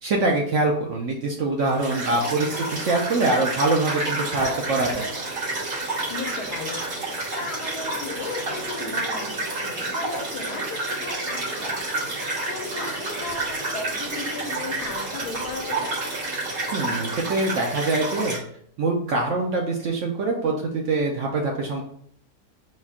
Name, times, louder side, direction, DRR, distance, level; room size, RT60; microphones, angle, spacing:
voice 1, 0.0-5.1 16.7-18.4 18.8-21.8, right 2 dB, 65° right, 0 dB, 0.8 m, -24 dB
sound 1, 1.6-18.4, right 2 dB, 85° right, 2.0 m, -29 dB
voice 2, 6.1-15.9, left 4 dB, 75° left, 3 dB, 1.3 m, -36 dB
4.3 x 2.4 x 3.5 m, 0.64 s
omnidirectional pair, 1.7 m